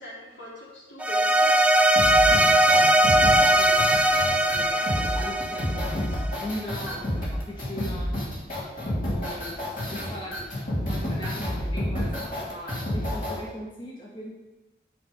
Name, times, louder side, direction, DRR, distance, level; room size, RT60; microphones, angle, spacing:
voice 1, 0.0-2.9 4.7-4.8 5.8-5.9, left 1 dB, 85° left, -6 dB, 3.7 m, -43 dB
sound 1, 1.0-6.3, right 1 dB, 10° right, 0.4 m, -20 dB
sound 2, 2.0-13.4, left 1 dB, 50° left, 2.6 m, -29 dB
voice 2, 3.5-4.0 4.4-8.1 9.1-10.5 10.8-14.4, equal, 25° left, -4 dB, 1.5 m, -39 dB
10.5 x 5.3 x 5.2 m, 1.0 s
head